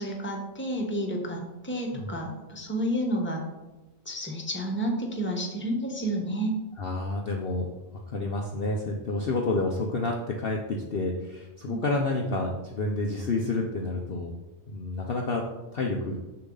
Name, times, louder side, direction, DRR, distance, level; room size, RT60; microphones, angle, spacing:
voice 1, 0.0-3.4 4.0-6.5 11.6-11.8, right 1 dB, 10° left, 0 dB, 1.1 m, -30 dB
voice 2, 6.8-7.7 8.1-14.3 14.7-15.4 15.7-16.2, left 2 dB, 50° left, 0 dB, 0.8 m, -29 dB
6.9 x 6.8 x 3.9 m, 1.0 s
omnidirectional pair, 1.5 m